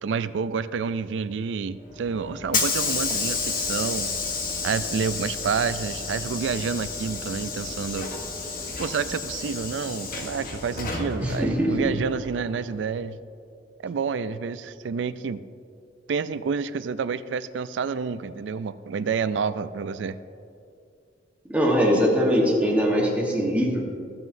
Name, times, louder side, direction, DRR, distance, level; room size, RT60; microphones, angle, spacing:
voice 1, 0.0-4.2 4.6-8.1 8.8-13.2 13.8-15.4 16.1-20.2, right 5 dB, 80° right, 14 dB, 0.4 m, -29 dB
Hiss / Sliding door, 1.8-12.7, left 4 dB, 50° left, 1.0 m, -31 dB
voice 2, 11.2-11.9 21.4-23.8, equal, 10° right, -2 dB, 1.3 m, -22 dB
14.5 x 7.6 x 2.7 m, 2.4 s
head